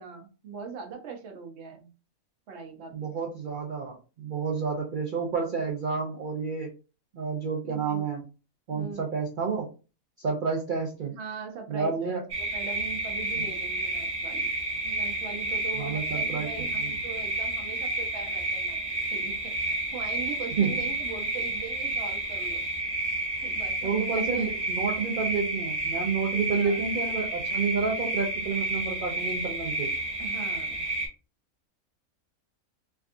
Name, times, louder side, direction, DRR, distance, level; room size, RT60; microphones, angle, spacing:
voice 1, 0.0-1.9 2.5-3.1 7.6-8.0 8.7-9.1 11.1-14.5 14.8-18.8 19.1-22.6 23.4-24.5 26.3-26.8 30.2-30.9, right 5 dB, 55° right, 3 dB, 1.0 m, -41 dB
voice 2, 2.9-6.7 7.1-8.2 8.7-9.7 10.2-11.1 11.7-12.2 13.4-13.5 15.8-16.5 20.6-20.8 23.8-30.0, right 5 dB, 75° right, -1 dB, 0.4 m, -30 dB
sound 1, 12.3-31.1, right 2 dB, 20° right, 1.0 m, -31 dB
3.5 x 2.3 x 2.4 m, 0.33 s
omnidirectional pair, 1.5 m